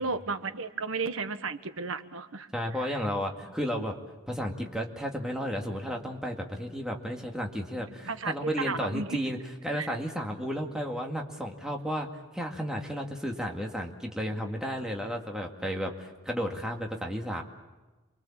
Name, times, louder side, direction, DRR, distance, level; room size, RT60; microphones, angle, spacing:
voice 1, 0.0-2.5 8.0-9.2 9.7-9.9, right 4 dB, 70° right, 10 dB, 1.4 m, -33 dB
voice 2, 2.5-4.0 4.3-12.1 12.3-17.4, equal, 5° right, 1 dB, 2.1 m, -33 dB
28.5 x 23.0 x 7.3 m, 1.2 s
head